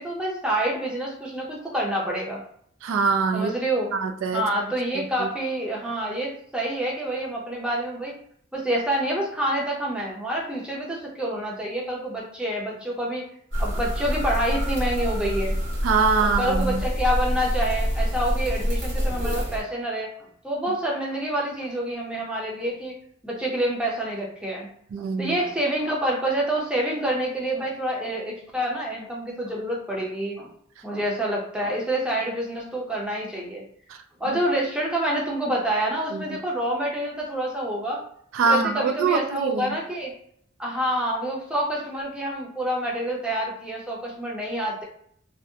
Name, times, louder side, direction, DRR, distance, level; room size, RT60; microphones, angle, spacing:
voice 1, 0.0-2.4 3.3-3.9 4.3-8.1 8.5-13.3 13.6-15.5 16.2-20.1 20.4-22.9 23.2-24.7 25.0-30.5 30.8-33.6 34.2-38.0 38.4-40.1 40.6-44.8, right 1 dB, 5° right, -3 dB, 0.5 m, -27 dB
voice 2, 2.8-3.5 3.9-4.4 15.8-16.8 24.9-25.4 36.1-36.2 38.4-39.7, right 4 dB, 90° right, 6 dB, 0.3 m, -23 dB
sound 1, 13.5-19.6, equal, 65° right, 1.4 m, -26 dB
2.6 x 2.0 x 2.6 m, 0.65 s
head